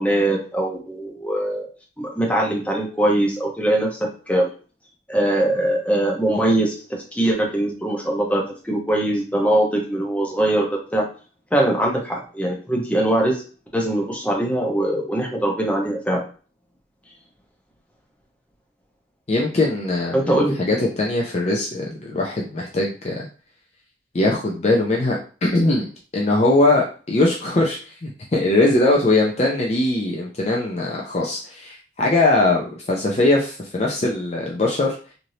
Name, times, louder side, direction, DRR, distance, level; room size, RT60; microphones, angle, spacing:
voice 1, 0.0-1.6 2.0-4.0 4.3-4.5 5.1-6.7 7.1-11.0 11.5-13.4 13.7-16.2 20.1-20.5, right 1 dB, 5° left, -2 dB, 0.7 m, -21 dB
voice 2, 19.3-23.3 24.1-35.0, left 2 dB, 35° left, -2 dB, 0.4 m, -21 dB
3.1 x 2.6 x 2.7 m, 0.38 s
head